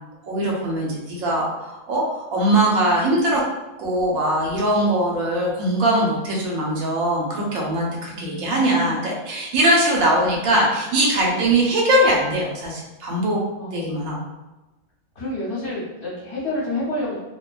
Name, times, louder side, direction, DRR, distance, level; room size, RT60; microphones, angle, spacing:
voice 1, 0.2-3.4 3.8-13.4 13.7-14.2, right 1 dB, 80° right, -2 dB, 1.1 m, -21 dB
voice 2, 8.1-9.0 11.3-11.6 13.6-14.3 15.2-17.2, left 2 dB, 55° left, -7 dB, 1.1 m, -29 dB
2.7 x 2.1 x 2.3 m, 1.0 s
omnidirectional pair, 1.5 m